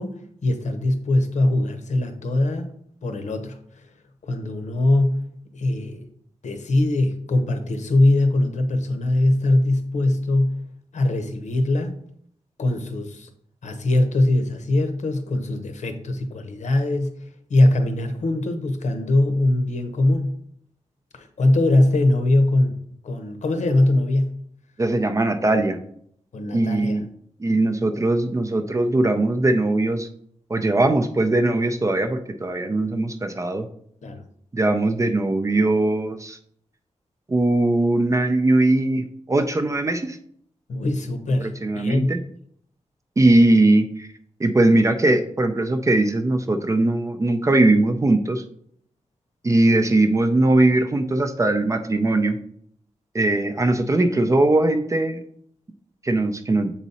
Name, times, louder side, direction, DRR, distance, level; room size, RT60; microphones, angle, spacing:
voice 1, 0.0-2.7 3.0-3.6 4.2-5.3 5.5-6.1 6.4-10.6 10.9-11.9 12.6-13.3 13.6-17.2 17.5-20.4 21.1-24.4 26.3-27.0 34.0-34.3 40.7-42.2, left 1 dB, 80° left, 0.9 m, -21 dB
voice 2, 24.8-25.8 26.5-27.0 27.4-30.1 30.5-33.7 34.5-36.4 37.3-40.2 41.4-42.2 43.2-44.1 44.4-48.4 49.4-52.4 53.1-55.2 56.0-56.7, right 2 dB, 25° right, 0.5 m, -20 dB
7.3 x 4.0 x 4.1 m
wide cardioid pair, 180°, 12 cm